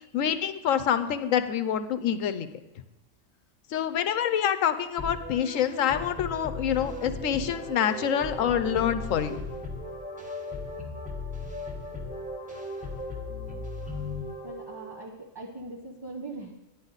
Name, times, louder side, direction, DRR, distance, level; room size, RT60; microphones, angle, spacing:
voice 1, 0.1-2.5 3.7-9.4, left 9 dB, 85° left, 11 dB, 1.1 m, -26 dB
sound 1, 5.0-15.1, left 2 dB, 5° right, 1.4 m, -37 dB
voice 2, 13.3-13.6 14.4-16.5, right 2 dB, 20° right, 0 dB, 0.8 m, -41 dB
10.0 x 9.8 x 4.0 m, 1.1 s
omnidirectional pair, 1.3 m